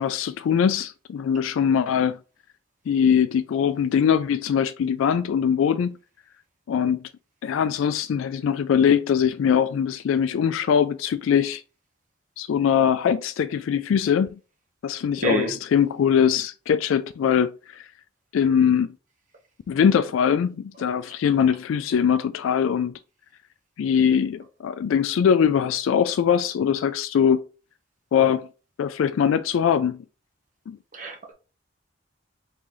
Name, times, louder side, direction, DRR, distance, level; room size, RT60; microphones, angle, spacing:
voice 1, 0.0-2.2 2.9-6.0 6.7-7.0 7.4-11.6 12.4-14.3 14.8-17.9 18.3-18.9 19.7-22.9 23.8-27.4 28.1-28.5 28.8-30.0 30.7-30.8, left 7 dB, 80° left, 0.3 m, -22 dB
voice 2, 30.9-31.3, right 1 dB, 40° right, 1.0 m, -26 dB
3.8 x 3.1 x 3.7 m
head